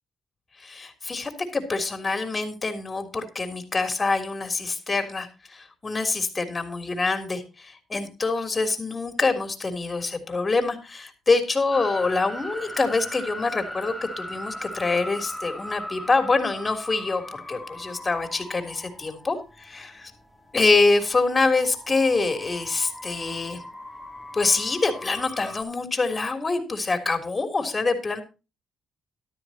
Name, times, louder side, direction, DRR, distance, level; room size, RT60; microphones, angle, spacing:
voice 1, 0.6-20.1 20.5-23.6 24.3-28.2, left 3 dB, 25° left, 6 dB, 3.4 m, -25 dB
sound 1, 11.7-25.6, left 1 dB, ahead, 2.9 m, -39 dB
14.0 x 12.5 x 2.9 m, 0.29 s
cardioid pair, 90°, 0 cm